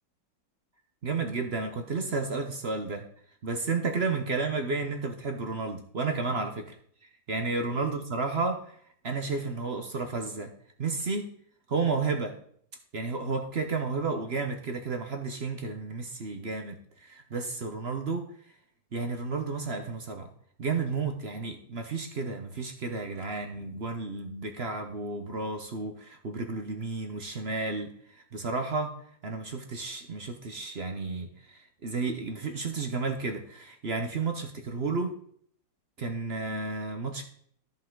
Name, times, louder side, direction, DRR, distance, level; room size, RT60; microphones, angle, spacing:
voice 1, 1.0-3.1 3.4-6.7 7.3-8.8 9.0-10.5 10.8-11.3 11.7-12.3 12.9-18.2 18.9-20.3 20.6-28.9 29.2-35.2 36.0-37.2, right 4 dB, 50° right, 5 dB, 0.8 m, -32 dB
13.5 x 5.4 x 3.8 m, 0.62 s
omnidirectional pair, 2.0 m